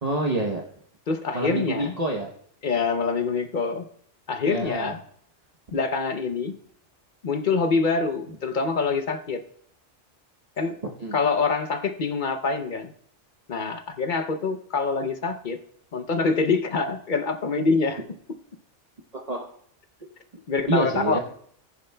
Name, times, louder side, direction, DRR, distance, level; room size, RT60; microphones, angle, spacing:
voice 1, 0.0-0.6 1.3-2.3 4.4-4.9 5.7-5.8 11.0-11.2 19.1-19.4 20.7-21.2, right 2 dB, 35° right, 0 dB, 0.9 m, -27 dB
voice 2, 1.1-1.9 2.6-3.9 4.3-5.0 5.7-6.6 7.2-9.4 10.6-10.8 11.1-12.9 13.5-15.6 15.9-18.0 20.5-21.2, left 4 dB, 50° left, 8 dB, 0.8 m, -25 dB
19.5 x 7.0 x 2.2 m, 0.65 s
omnidirectional pair, 1.2 m